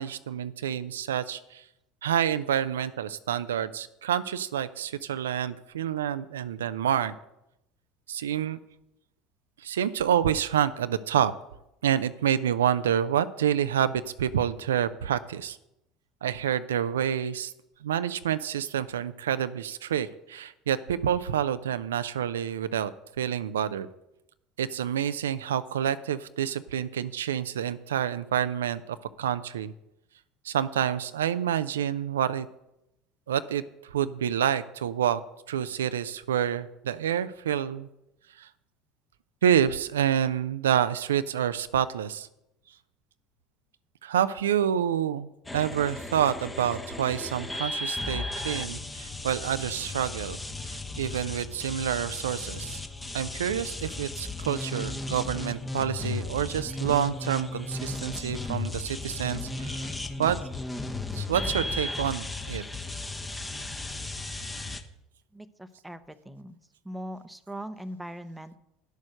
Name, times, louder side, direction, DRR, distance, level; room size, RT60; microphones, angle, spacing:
voice 1, 0.0-1.6 2.0-7.1 8.1-8.6 9.6-11.3 11.8-15.6 16.2-17.5 17.8-22.9 23.2-23.9 24.6-29.7 30.4-32.5 33.3-33.6 33.9-35.2 35.5-37.9 38.4-38.5 39.4-42.3 44.0-50.4 50.6-52.8 53.1-60.4 61.1-62.6, right 9 dB, 80° right, 13 dB, 0.4 m, -28 dB
sound 1, 45.5-64.8, left 2 dB, 15° left, 1.1 m, -35 dB
voice 2, 65.3-66.6 66.8-68.6, equal, 5° right, 10 dB, 0.8 m, -40 dB
10.5 x 6.4 x 6.4 m, 0.87 s
hypercardioid pair, 70°, 0 cm